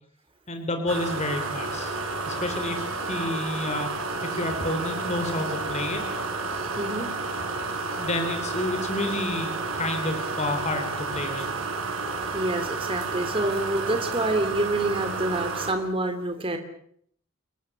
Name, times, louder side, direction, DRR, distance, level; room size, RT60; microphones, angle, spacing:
voice 1, 0.5-2.0 2.3-3.9 4.2-6.0 8.0-11.5, left 2 dB, 35° left, 6 dB, 3.7 m, -30 dB
sound 1, 0.9-15.7, right 3 dB, 70° right, 5.9 m, -31 dB
voice 2, 6.8-7.1 12.3-16.6, right 2 dB, 25° right, 7 dB, 2.8 m, -27 dB
29.5 x 19.5 x 7.2 m, 0.65 s
head